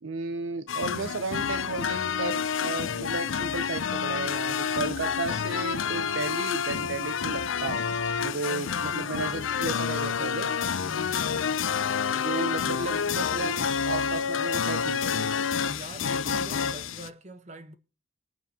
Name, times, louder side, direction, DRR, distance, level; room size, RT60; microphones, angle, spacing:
voice 1, 0.0-7.8 8.2-10.5 12.2-15.3, right 3 dB, 80° right, 0.8 m, -34 dB
sound 1, 0.7-17.1, left 6 dB, 80° left, 0.6 m, -29 dB
voice 2, 10.8-11.6 12.9-13.0 15.6-17.7, right 1 dB, 35° right, 1.1 m, -45 dB
24.0 x 9.0 x 2.9 m
head